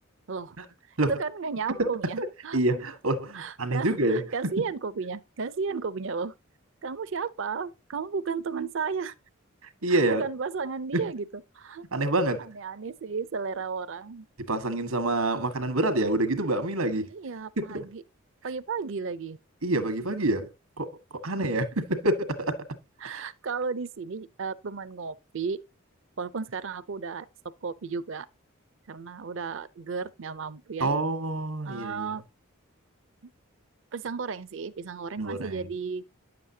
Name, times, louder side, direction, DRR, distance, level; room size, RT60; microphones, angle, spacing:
voice 1, 0.9-2.6 3.3-6.3 6.8-9.1 9.9-11.2 11.5-11.8 12.4-14.3 17.1-18.0 18.4-19.4 23.0-25.6 26.2-27.3 27.6-28.3 28.9-30.9 31.6-32.2 33.2-33.3 33.9-36.0, right 5 dB, 60° right, 0.5 m, -33 dB
voice 2, 2.5-4.5 9.8-10.3 10.9-11.0 11.9-12.5 14.5-17.1 17.6-17.9 19.6-20.5 20.8-20.9 21.2-22.6 23.0-23.2 30.8-32.2 35.2-35.7, right 2 dB, 90° right, 1.5 m, -27 dB
9.8 x 7.6 x 2.8 m
head